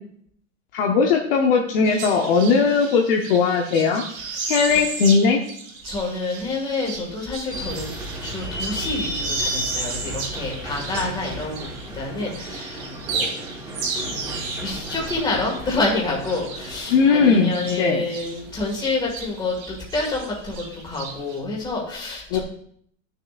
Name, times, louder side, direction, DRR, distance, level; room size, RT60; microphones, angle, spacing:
voice 1, 0.7-4.0 4.5-5.4 16.9-17.5 17.8-18.0 22.3-22.4, left 5 dB, 45° left, 2 dB, 0.9 m, -18 dB
sound 1, 1.8-12.0 12.3-18.4 18.7-21.4, right 4 dB, 75° right, 2.5 m, -34 dB
voice 2, 4.2-4.5 5.8-7.9 8.2-11.6 11.9-13.4 13.9-22.4, left 3 dB, 10° left, -2 dB, 1.9 m, -28 dB
sound 2, 7.5-19.1, equal, 10° right, 1.4 m, -35 dB
12.5 x 6.7 x 2.5 m, 0.64 s
supercardioid pair, 170°, 40 cm